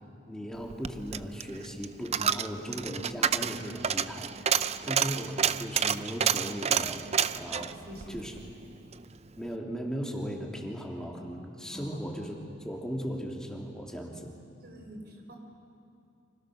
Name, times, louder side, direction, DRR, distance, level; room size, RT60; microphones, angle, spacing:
voice 1, 0.3-8.3 9.4-12.3 12.6-14.3, equal, 5° left, 0 dB, 2.8 m, -37 dB
Coin (dropping), 0.6-9.0 9.4-9.5, right 7 dB, 35° right, 0.5 m, -30 dB
voice 2, 7.7-8.2 11.7-12.4 12.6-12.8 14.6-15.4, equal, 60° right, 2 dB, 4.8 m, -46 dB
29.5 x 25.5 x 6.5 m, 2.4 s
head